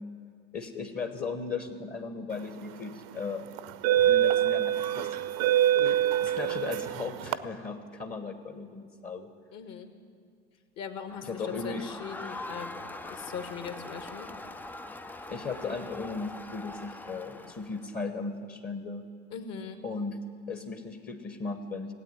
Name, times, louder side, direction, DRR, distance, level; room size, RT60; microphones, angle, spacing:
voice 1, 0.5-3.5 4.0-5.1 5.5-9.3 11.2-11.9 15.3-19.1 19.8-21.9, left 4 dB, 25° left, 8 dB, 1.1 m, -37 dB
sound 1, 2.6-2.8 3.6-7.4, right 12 dB, 55° right, 0.7 m, -25 dB
voice 2, 9.5-9.9 10.8-12.8 13.1-14.3 17.3-17.5 19.3-19.8, left 7 dB, 50° left, 8 dB, 1.6 m, -40 dB
Crowd, 11.1-17.9, left 2 dB, 5° left, 0.3 m, -43 dB
16.5 x 8.6 x 9.2 m, 2.1 s
hypercardioid pair, 80°, 35 cm